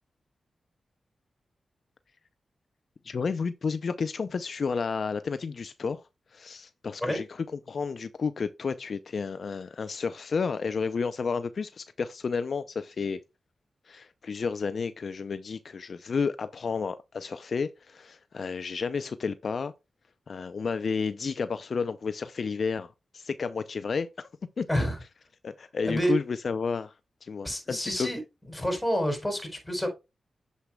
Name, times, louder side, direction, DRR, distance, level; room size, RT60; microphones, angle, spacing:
voice 1, 3.0-6.0 6.3-13.2 13.9-19.7 20.3-24.3 24.6-24.7 25.4-26.9 27.2-28.1, left 5 dB, 65° left, 0.5 m, -31 dB
voice 2, 25.8-26.1 27.4-28.2 28.5-29.9, equal, 15° left, 4.4 m, -28 dB
8.2 x 7.5 x 2.3 m
cardioid pair, 45°, 0 cm